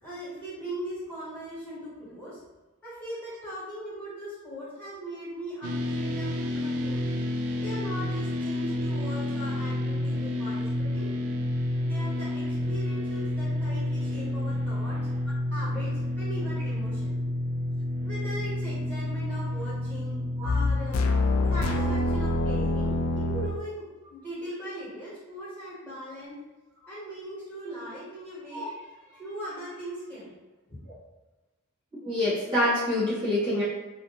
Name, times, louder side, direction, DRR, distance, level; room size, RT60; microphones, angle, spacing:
voice 1, 0.0-2.4 2.8-7.0 7.6-11.1 11.8-15.0 15.5-17.2 18.0-21.0 21.5-23.8 24.1-26.4 26.9-30.3 30.7-30.8, equal, 10° left, -12 dB, 1.3 m, -39 dB
sound 1, 5.6-20.9, left 1 dB, 80° right, 0.3 m, -30 dB
sound 2, 20.4-23.6, left 2 dB, 75° left, 0.3 m, -25 dB
voice 2, 32.0-33.6, left 1 dB, 25° right, -11 dB, 0.9 m, -26 dB
2.4 x 2.1 x 3.0 m, 1.1 s
head